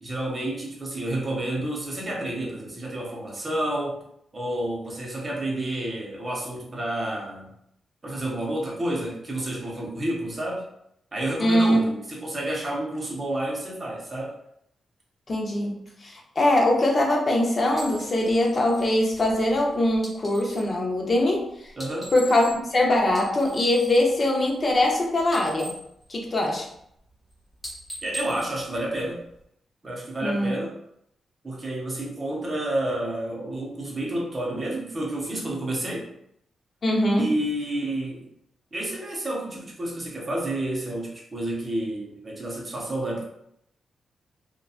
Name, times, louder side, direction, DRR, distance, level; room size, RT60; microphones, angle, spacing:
voice 1, 0.0-4.1 4.3-7.5 8.0-10.7 11.1-14.3 21.8-22.1 28.0-29.2 29.8-30.8 31.4-36.1 37.2-38.3 38.7-43.2, right 1 dB, 25° right, -2 dB, 0.6 m, -30 dB
voice 2, 11.4-11.8 15.3-21.4 22.1-25.7 26.1-26.7 30.2-30.5 36.8-37.3, left 1 dB, 35° left, -1 dB, 0.5 m, -22 dB
sound 1, 17.8-20.8 21.7-22.8 23.0-24.9 25.2-26.8 27.1-27.3 27.6-29.4, equal, 5° left, 0.9 m, -42 dB
2.7 x 2.2 x 2.4 m, 0.74 s
wide cardioid pair, 140°, 0 cm